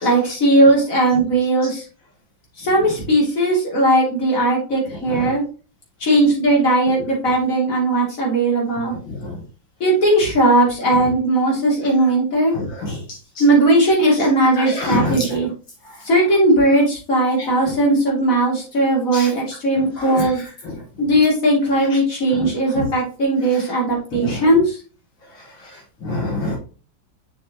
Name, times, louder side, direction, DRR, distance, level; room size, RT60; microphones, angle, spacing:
voice 1, 0.0-1.8 2.6-5.4 6.0-8.9 9.8-12.5 13.4-15.5 16.0-20.4 21.0-24.8, right 1 dB, 40° left, -3 dB, 3.3 m, -17 dB
voice 2, 12.5-12.9 14.6-15.3 19.1-19.3 20.0-20.3 22.4-22.5 22.8-22.9 24.2-24.4 26.1-26.6, left 2 dB, 70° left, -2 dB, 2.4 m, -25 dB
7.2 x 6.2 x 3.0 m, 0.37 s
omnidirectional pair, 2.2 m